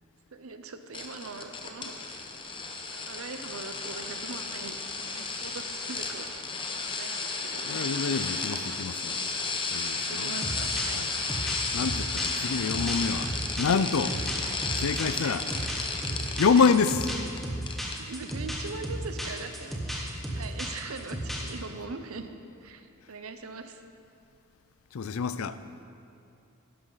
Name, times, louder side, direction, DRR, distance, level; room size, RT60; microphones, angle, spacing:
voice 1, 0.3-2.2 2.9-6.3 6.7-8.0 8.3-8.8 10.1-11.0 12.4-12.6 14.4-14.6 15.2-15.4 16.5-16.7 18.0-22.3 22.6-23.8, right 4 dB, 90° right, 8 dB, 0.7 m, -42 dB
sound 1, 0.9-17.4 17.7-18.0 18.3-18.4, left 4 dB, 25° left, 0.8 m, -33 dB
voice 2, 7.6-9.2 9.7-10.3 10.9-11.1 11.7-13.3 13.6-14.2 14.8-15.4 16.4-17.0 24.9-25.6, left 5 dB, 75° left, 13 dB, 0.5 m, -26 dB
sound 2, 10.4-21.6, equal, ahead, 1.3 m, -34 dB
12.0 x 11.5 x 4.0 m, 2.5 s
head